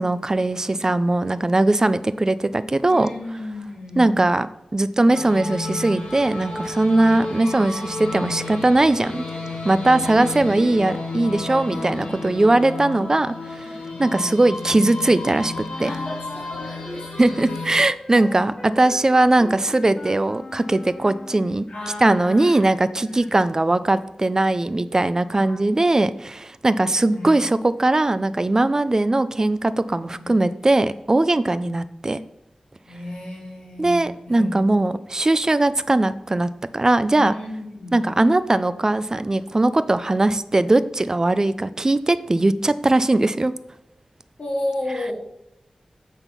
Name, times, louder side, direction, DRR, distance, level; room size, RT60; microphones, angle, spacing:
voice 1, 0.0-3.1 4.0-4.5 4.7-9.2 9.6-13.7 14.0-15.9 17.2-21.6 22.0-32.2 33.8-37.3 37.9-43.5, right 2 dB, 30° right, 14 dB, 0.4 m, -20 dB
voice 2, 2.9-4.2 11.7-12.5 13.6-14.4 15.8-17.1 17.6-17.7 18.1-18.7 21.7-22.7 23.0-23.3 25.3-25.6 27.1-27.4 29.9-30.3 32.9-34.9 37.2-38.0 44.4-45.1, left 1 dB, 65° left, -2 dB, 2.2 m, -34 dB
sound 1, 5.1-17.7, left 2 dB, 90° left, 1.7 m, -32 dB
Wind instrument woodwind instrument, 15.7-21.6, left 1 dB, 40° left, 1.0 m, -40 dB
8.0 x 3.6 x 5.7 m, 0.87 s
wide cardioid pair, 85°, 2 cm